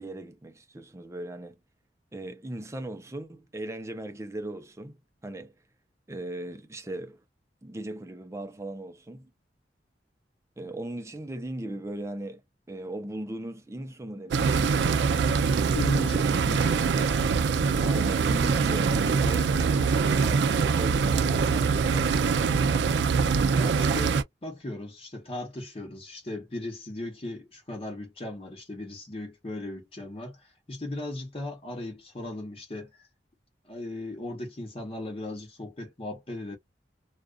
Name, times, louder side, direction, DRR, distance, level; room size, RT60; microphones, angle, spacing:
voice 1, 0.0-1.6 2.1-5.5 6.1-7.2 7.6-9.3 10.6-12.4 12.7-14.8 17.9-22.4, right 1 dB, 15° right, 0.5 m, -38 dB
sound 1, 14.3-24.2, right 5 dB, 70° right, 0.3 m, -24 dB
voice 2, 15.7-17.2 23.5-33.0 33.6-36.6, left 2 dB, 35° left, 0.9 m, -37 dB
2.3 x 2.3 x 2.2 m
head